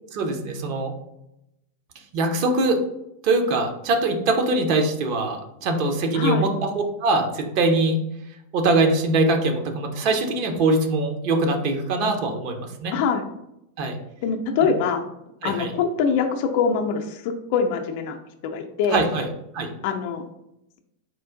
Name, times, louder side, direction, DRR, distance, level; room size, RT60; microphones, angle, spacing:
voice 1, 0.1-0.9 2.1-2.8 3.2-6.7 7.0-8.0 8.5-12.9 13.8-13.9 15.4-15.7 18.9-19.3 19.5-19.7, right 2 dB, 45° right, 4 dB, 0.7 m, -22 dB
voice 2, 6.1-6.5 12.9-13.2 14.2-15.1 15.4-18.2 18.5-19.1 19.8-20.2, left 6 dB, 45° left, 5 dB, 0.5 m, -24 dB
4.5 x 2.4 x 3.6 m, 0.83 s
figure-of-eight pair, 90°, 0 cm